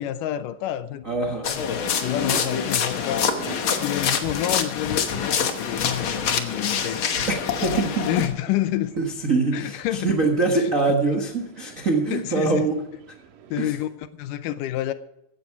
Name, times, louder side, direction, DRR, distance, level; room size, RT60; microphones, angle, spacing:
voice 1, 0.0-1.0 1.6-3.2 3.8-7.0 8.0-8.9 9.5-10.1 12.1-12.7 13.5-14.9, left 12 dB, 80° left, 2.2 m, -28 dB
sound 1, 0.9-10.5, left 3 dB, 45° left, 2.9 m, -49 dB
voice 2, 1.0-1.5 7.3-8.1 9.0-12.8 13.6-13.7, right 3 dB, 50° right, 0.9 m, -24 dB
sound 2, 1.4-8.3, left 7 dB, 65° left, 1.3 m, -26 dB
sound 3, 1.9-13.9, right 7 dB, 80° right, 2.7 m, -44 dB
16.0 x 10.5 x 4.7 m
omnidirectional pair, 3.9 m